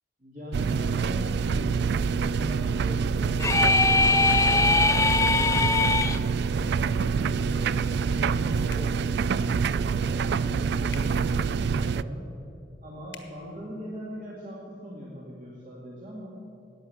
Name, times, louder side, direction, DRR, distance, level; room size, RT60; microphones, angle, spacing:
voice 1, 0.2-1.8 2.1-6.1 6.5-12.2 12.8-16.4, equal, 45° right, -5 dB, 2.2 m, -40 dB
sound 1, 0.5-12.0, right 5 dB, 65° right, 0.3 m, -26 dB
sound 2, 3.4-6.2, left 3 dB, 15° left, 0.4 m, -21 dB
sound 3, 3.6-3.8 6.0-6.2 8.6-8.9 10.9-11.1 13.1-13.3, left 7 dB, 70° left, 1.4 m, -43 dB
14.0 x 9.3 x 8.0 m, 2.6 s
head